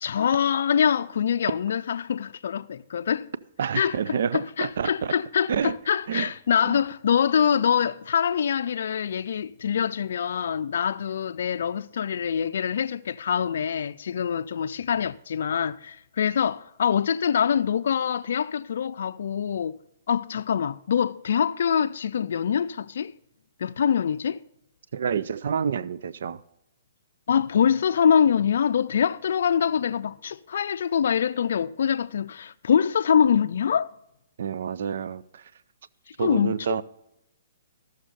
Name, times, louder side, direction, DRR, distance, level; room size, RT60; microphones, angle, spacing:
voice 1, 0.0-3.3 3.7-19.8 20.1-23.1 23.6-24.4 27.3-33.9 36.2-36.8, left 8 dB, 70° left, 0.4 m, -24 dB
voice 2, 3.6-5.1 5.5-5.7 6.1-6.3 6.7-6.8 24.9-26.4 34.4-35.4 36.2-36.8, right 7 dB, 65° right, 0.5 m, -28 dB
13.5 x 6.5 x 5.2 m
hypercardioid pair, 145°, 0 cm